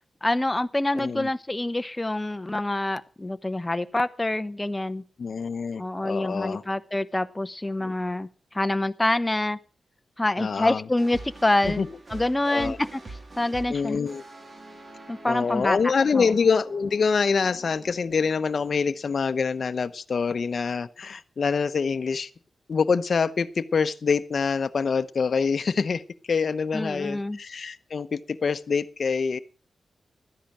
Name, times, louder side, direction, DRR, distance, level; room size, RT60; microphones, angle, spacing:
voice 1, 0.2-5.0 5.8-9.6 10.2-14.0 15.1-16.3 26.7-27.4, left 1 dB, 15° left, 11 dB, 1.0 m, -26 dB
voice 2, 0.9-1.3 5.2-6.6 7.8-7.9 10.4-10.8 11.7-11.9 12.5-12.8 13.7-14.2 15.3-22.3 22.7-26.0 26.3-29.4, left 5 dB, 60° left, 12 dB, 0.9 m, -25 dB
sound 1, 11.0-19.1, right 2 dB, 45° right, 3.0 m, -45 dB
13.5 x 10.0 x 6.1 m, 0.39 s
cardioid pair, 75°, 0 cm